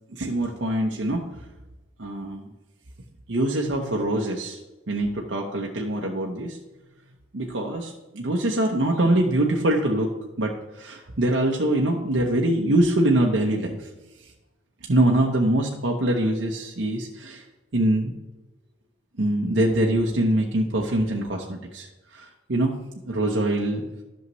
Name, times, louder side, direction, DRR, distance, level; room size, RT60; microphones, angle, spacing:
voice 1, 0.1-1.2 2.0-2.5 3.3-4.6 4.9-6.6 7.3-13.9 14.9-17.4 17.7-18.1 19.2-22.7 23.1-23.9, right 1 dB, 70° right, -1 dB, 0.9 m, -24 dB
11.0 x 6.5 x 3.1 m, 1.1 s
head